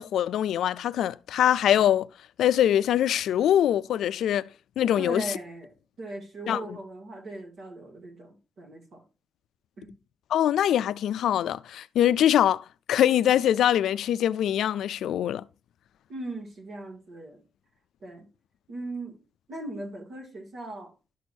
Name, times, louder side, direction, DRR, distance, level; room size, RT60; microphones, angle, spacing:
voice 1, 0.0-2.1 2.4-4.4 4.8-5.2 6.5-6.6 10.3-15.4, left 11 dB, 80° left, 0.4 m, -23 dB
voice 2, 5.0-9.0 9.8-10.0 16.1-17.4 18.0-18.3 18.7-19.2 19.5-20.9, right 2 dB, 55° right, 2.2 m, -39 dB
12.0 x 6.2 x 2.7 m
cardioid pair, 150°, 0 cm